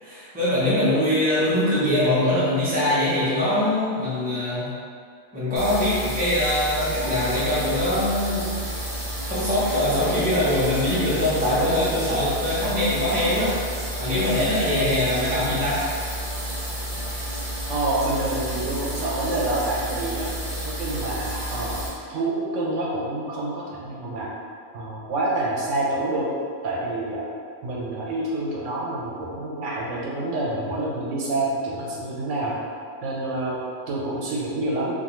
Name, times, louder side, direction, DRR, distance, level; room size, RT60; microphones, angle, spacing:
voice 1, 0.0-4.7 5.3-8.6 9.2-13.6 14.0-15.8, left 1 dB, 10° right, -10 dB, 0.4 m, -22 dB
sound 1, 5.6-21.9, right 1 dB, 45° right, 0.7 m, -31 dB
voice 2, 17.7-20.3 20.6-21.8 22.1-24.3 24.7-26.3 26.6-27.3 27.6-32.5 33.0-34.9, right 2 dB, 75° right, -5 dB, 0.9 m, -27 dB
2.3 x 2.3 x 2.9 m, 2.1 s
omnidirectional pair, 1.3 m